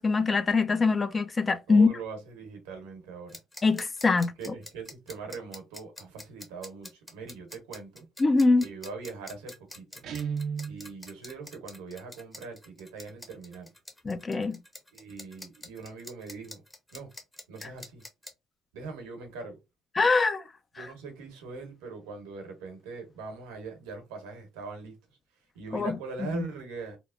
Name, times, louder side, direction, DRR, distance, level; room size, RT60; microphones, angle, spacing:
voice 1, 0.0-1.9 3.6-4.5 8.2-8.6 14.0-14.6 17.6-17.7 20.0-20.4 20.8-20.9 25.7-26.3, left 3 dB, 30° left, 0.5 m, -24 dB
voice 2, 1.7-3.4 4.4-8.1 8.6-10.0 10.7-13.7 14.9-16.6 16.9-17.1 17.5-18.0 18.7-19.6 20.8-24.9 25.5-27.0, right 4 dB, 80° right, 0.9 m, -41 dB
sound 1, 3.3-18.3, left 1 dB, 10° left, 0.9 m, -46 dB
Guitar, 10.0-10.8, right 6 dB, 60° right, 0.5 m, -32 dB
2.9 x 2.0 x 2.5 m
hypercardioid pair, 60°, 0 cm